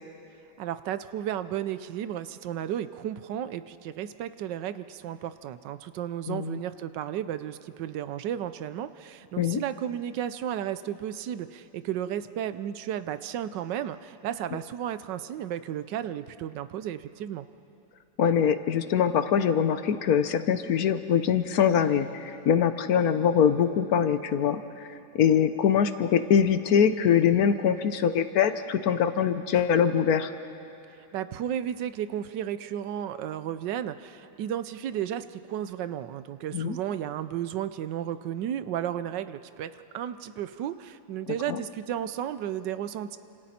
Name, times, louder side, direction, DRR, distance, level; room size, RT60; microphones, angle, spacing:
voice 1, 0.6-17.5 31.1-43.2, right 10 dB, 85° right, 13 dB, 1.4 m, -33 dB
voice 2, 6.3-6.6 9.4-9.6 18.2-24.9 25.1-30.3 36.5-36.8 41.5-41.6, left 8 dB, 65° left, 10 dB, 1.2 m, -23 dB
29.5 x 27.0 x 4.3 m, 2.8 s
omnidirectional pair, 1.9 m